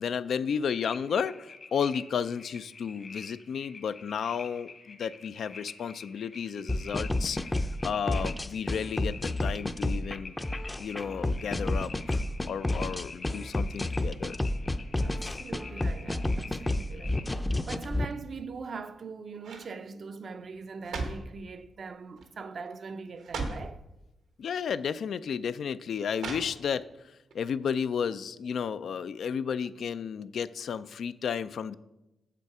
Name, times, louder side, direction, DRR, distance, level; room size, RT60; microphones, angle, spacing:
voice 1, 0.0-10.4 10.8-14.4 24.4-31.7, left 7 dB, 75° left, 0.3 m, -33 dB
sound 1, 0.8-17.2, left 4 dB, 50° left, 1.2 m, -47 dB
sound 2, 6.7-18.1, left 1 dB, 20° left, 0.5 m, -30 dB
voice 2, 15.0-23.8, right 4 dB, 60° right, 0.5 m, -42 dB
sound 3, 18.5-19.0 19.4-19.7 20.5-21.4 22.2-22.4 22.7-22.8 23.2-23.7 24.7-24.8 26.1-26.9 27.3-27.4, right 3 dB, 90° right, 1.1 m, -37 dB
7.3 x 6.7 x 4.7 m
cardioid pair, 60°, 0 cm